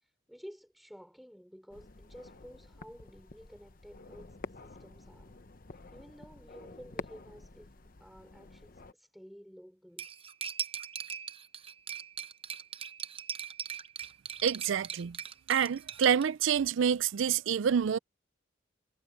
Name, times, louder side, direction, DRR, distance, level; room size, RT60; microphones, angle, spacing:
voice 1, 0.0-5.4 5.9-7.7 8.0-10.1, equal, ahead, 5.6 m, -52 dB
sound 1, 1.7-8.9, left 3 dB, 45° left, 0.9 m, -49 dB
Cutlery silverware, 10.0-16.3, right 8 dB, 30° right, 0.7 m, -40 dB
voice 2, 14.4-15.2 15.5-18.0, right 8 dB, 75° right, 0.4 m, -27 dB
head